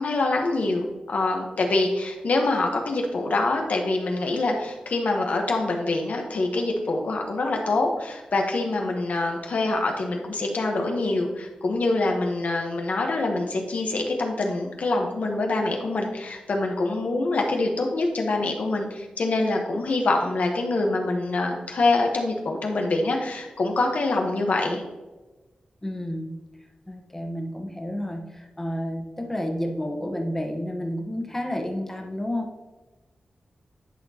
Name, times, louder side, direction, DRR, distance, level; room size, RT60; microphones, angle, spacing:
voice 1, 0.0-24.8, left 2 dB, 70° left, 2 dB, 1.1 m, -25 dB
voice 2, 25.8-26.3 26.9-32.5, equal, 15° left, 2 dB, 1.1 m, -30 dB
10.5 x 4.4 x 2.8 m, 1.2 s
wide cardioid pair, 85°, 3 cm